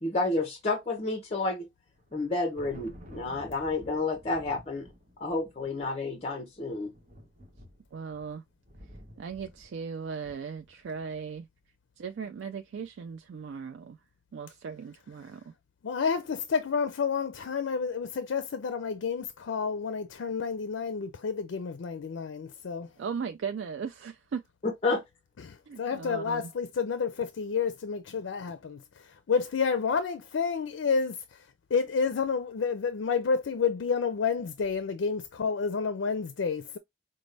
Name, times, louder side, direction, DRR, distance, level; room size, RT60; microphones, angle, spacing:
voice 1, 0.0-1.7 2.1-4.9 5.2-6.9 24.8-25.0, left 3 dB, 35° left, 0.7 m, -30 dB
Thunder, 1.9-11.4, equal, 45° right, 1.0 m, -52 dB
voice 2, 7.9-8.4 9.2-11.5 12.0-14.0 14.3-15.4 23.0-24.4 25.7-26.5, right 6 dB, 75° right, 0.3 m, -37 dB
voice 3, 15.8-22.9 25.4-31.5 31.7-36.8, left 5 dB, 80° left, 0.4 m, -30 dB
5.1 x 2.1 x 3.2 m
head